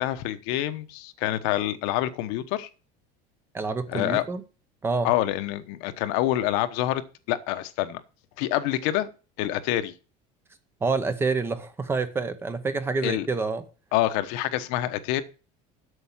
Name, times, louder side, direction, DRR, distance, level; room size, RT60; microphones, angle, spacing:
voice 1, 0.0-2.7 3.9-4.2 5.0-7.0 7.3-8.0 8.4-9.1 9.4-9.9 13.0-13.3 13.9-15.2, left 14 dB, 70° left, 1.0 m, -26 dB
voice 2, 3.5-4.4 4.8-5.1 10.8-13.7, right 4 dB, 15° right, 0.7 m, -27 dB
8.1 x 6.8 x 7.3 m
cardioid pair, 175°, 17 cm